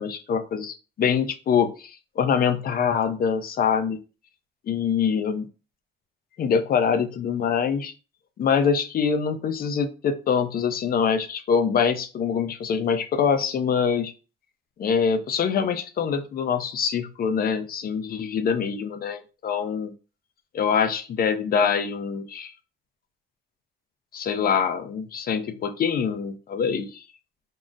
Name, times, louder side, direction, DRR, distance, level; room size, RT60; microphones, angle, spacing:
voice 1, 0.0-4.0 4.7-5.5 6.4-7.9 8.4-14.1 14.8-19.9 20.5-22.5 24.1-27.0, left 6 dB, 50° left, 9 dB, 0.5 m, -24 dB
3.7 x 2.0 x 2.5 m, 0.34 s
cardioid pair, 90°, 20 cm